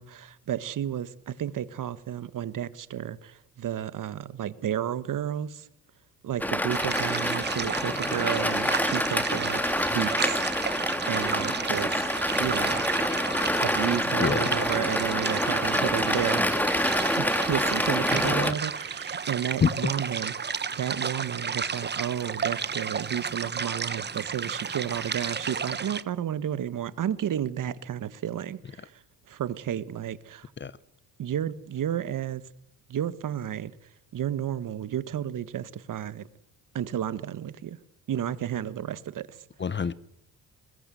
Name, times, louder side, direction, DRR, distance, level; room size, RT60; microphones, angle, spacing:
voice 1, 0.0-5.6 6.2-9.6 9.9-10.4 11.1-12.0 12.4-12.8 13.6-16.4 17.2-28.9 29.3-30.5 31.2-32.4 32.9-33.7 34.1-36.2 36.7-37.8 38.1-39.3, right 10 dB, 55° right, 1.5 m, -32 dB
sound 1, 6.4-18.5, left 1 dB, 5° left, 2.0 m, -27 dB
sound 2, 6.7-26.0, right 6 dB, 25° right, 1.1 m, -33 dB
voice 2, 18.1-18.5 19.6-19.9 30.6-30.7 39.6-39.9, left 6 dB, 30° left, 0.9 m, -27 dB
21.0 x 21.0 x 7.7 m
cardioid pair, 85°, 38 cm